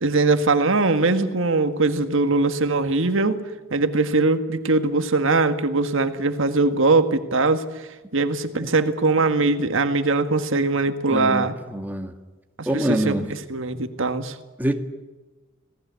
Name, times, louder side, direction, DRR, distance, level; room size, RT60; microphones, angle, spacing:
voice 1, 0.0-3.4 3.7-11.5 12.6-13.2 13.5-14.4, right 3 dB, 65° right, 1.7 m, -21 dB
voice 2, 11.1-12.1 12.7-13.3 14.6-14.7, right 1 dB, 10° right, 1.9 m, -25 dB
27.0 x 18.5 x 8.3 m
head